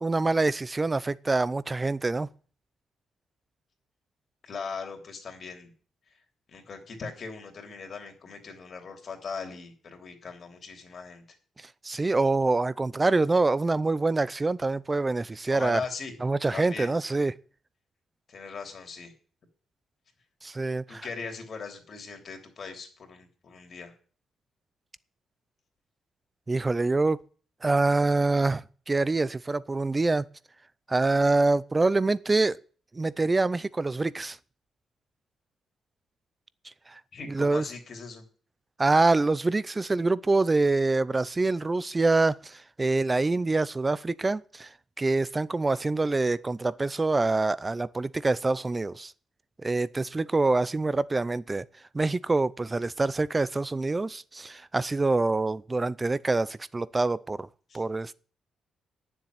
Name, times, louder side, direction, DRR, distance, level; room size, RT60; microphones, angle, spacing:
voice 1, 0.0-2.3 11.8-15.8 16.2-17.3 20.4-21.1 26.5-27.2 27.6-30.2 30.9-32.6 32.9-34.4 36.6-37.0 37.3-37.7 38.8-44.7 45.0-49.1 49.6-51.6 51.9-57.5 57.7-58.1, right 3 dB, 20° right, 0.5 m, -25 dB
voice 2, 4.4-5.7 6.5-11.2 15.5-16.1 16.5-16.9 18.3-19.1 20.9-23.9 37.1-38.2 57.7-57.8, left 5 dB, 45° left, 3.2 m, -39 dB
9.8 x 7.4 x 9.3 m
cardioid pair, 125°, 0 cm